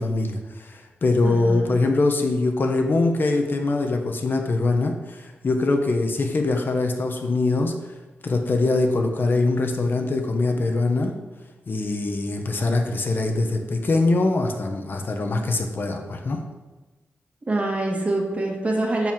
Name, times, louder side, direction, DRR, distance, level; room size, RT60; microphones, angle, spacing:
voice 1, 0.0-7.7 8.2-11.1 11.7-16.4, left 2 dB, 50° left, 3 dB, 1.3 m, -23 dB
voice 2, 1.2-1.8 17.5-19.1, right 2 dB, 30° right, 0 dB, 2.3 m, -25 dB
11.0 x 4.8 x 7.5 m, 1.1 s
wide cardioid pair, 115°, 5 cm